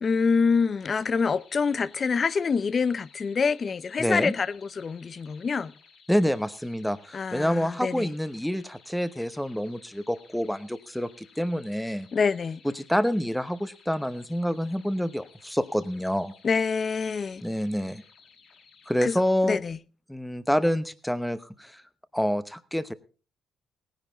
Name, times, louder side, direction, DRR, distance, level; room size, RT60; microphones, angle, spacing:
voice 1, 0.0-5.7 7.1-8.1 12.1-12.6 16.4-17.4 19.0-19.2 19.4-19.8, left 5 dB, 40° left, 0.6 m, -26 dB
sound 1, 0.8-19.3, left 5 dB, 75° left, 5.2 m, -57 dB
voice 2, 4.0-4.3 6.1-12.1 12.6-16.3 17.4-18.0 18.9-19.6 20.1-21.8 22.1-22.9, equal, ahead, 0.9 m, -27 dB
17.5 x 10.5 x 4.0 m
cardioid pair, 90°, 0 cm